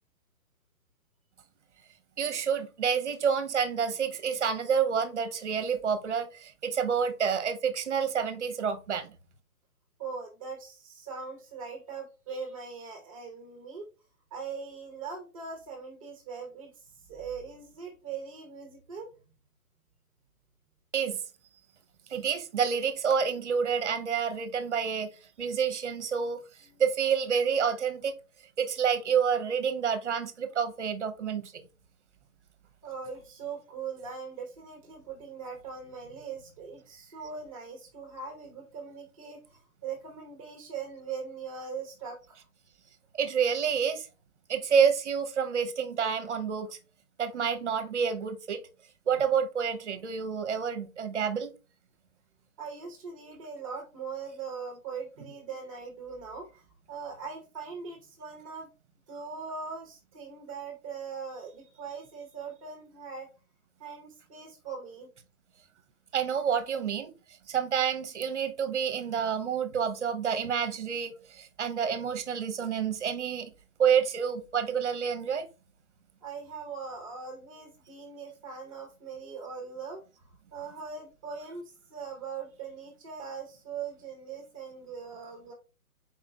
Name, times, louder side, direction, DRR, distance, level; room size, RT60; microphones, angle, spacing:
voice 1, 2.2-9.1 20.9-21.2 22.1-25.1 25.4-26.4 26.8-28.1 28.6-31.5 43.2-44.1 44.5-46.8 47.2-48.6 49.1-51.5 66.1-67.1 67.5-73.5 73.8-75.5, right 7 dB, 50° right, 0.8 m, -28 dB
voice 2, 10.0-13.9 14.3-19.1 32.8-42.4 52.6-58.7 59.1-63.3 63.8-65.1 76.2-80.0 80.5-85.5, right 5 dB, 25° right, 0.8 m, -41 dB
5.0 x 4.4 x 2.2 m
figure-of-eight pair, 140°, 44 cm